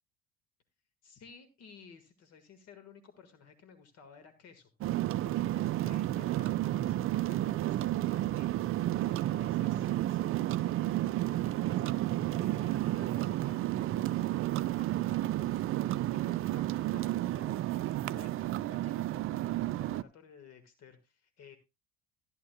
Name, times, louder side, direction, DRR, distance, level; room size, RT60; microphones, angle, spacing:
voice 1, 1.0-21.6, left 6 dB, 55° left, 10 dB, 1.7 m, -56 dB
sound 1, 4.8-20.0, right 14 dB, 45° right, 0.5 m, -31 dB
14.5 x 11.0 x 2.2 m, 0.23 s
hypercardioid pair, 70°, 31 cm